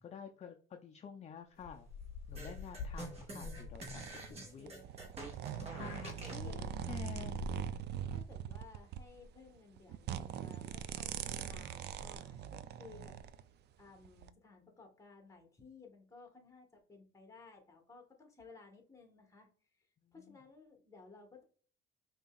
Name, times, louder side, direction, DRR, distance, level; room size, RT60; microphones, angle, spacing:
voice 1, 0.0-1.9 2.3-4.7 5.6-7.5 20.0-20.4, left 7 dB, 35° left, 5 dB, 0.5 m, -50 dB
sound 1, 1.6-4.1 5.1-5.2 5.5-8.1, left 4 dB, 80° left, 0.7 m, -47 dB
sound 2, 2.3-6.5, right 2 dB, 30° right, 1.6 m, -48 dB
sound 3, 3.7-13.4 14.0-14.3, right 9 dB, 55° right, 0.4 m, -42 dB
voice 2, 4.3-5.1 6.2-6.8 8.1-13.2 13.8-19.5 20.1-21.4, left 4 dB, 15° left, 3 dB, 1.3 m, -57 dB
5.3 x 2.9 x 2.4 m, 0.43 s
cardioid pair, 115°, 20 cm